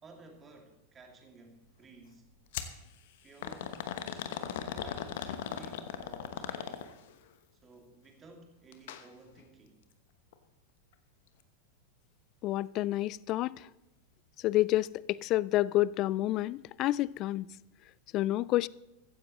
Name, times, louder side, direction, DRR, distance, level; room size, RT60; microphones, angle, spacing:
voice 1, 0.0-2.2 3.2-3.8 4.1-7.0 7.5-9.8, right 3 dB, 20° right, 2.5 m, -55 dB
sound 1, 2.5-2.8 3.4-7.1 8.7-9.0 9.4-9.5 10.3-10.4, left 9 dB, 55° left, 1.1 m, -38 dB
voice 2, 12.4-13.6 14.4-17.5 18.1-18.7, left 16 dB, 35° left, 0.3 m, -29 dB
15.5 x 15.0 x 3.1 m
figure-of-eight pair, 90°, 0 cm